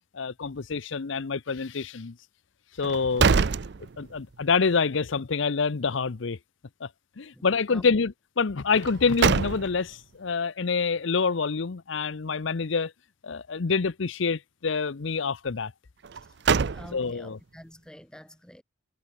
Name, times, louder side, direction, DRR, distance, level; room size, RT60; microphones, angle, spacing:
voice 1, 0.1-2.2 2.8-3.4 4.0-6.4 6.8-6.9 7.2-12.9 13.2-15.7 16.9-17.4, left 5 dB, 70° left, 0.7 m, -27 dB
sound 1, 2.8-4.4 4.8-4.9 8.7-10.0 16.0-17.3, right 5 dB, 55° right, 0.5 m, -25 dB
voice 2, 7.3-8.0 16.7-18.6, equal, 5° left, 1.6 m, -47 dB
head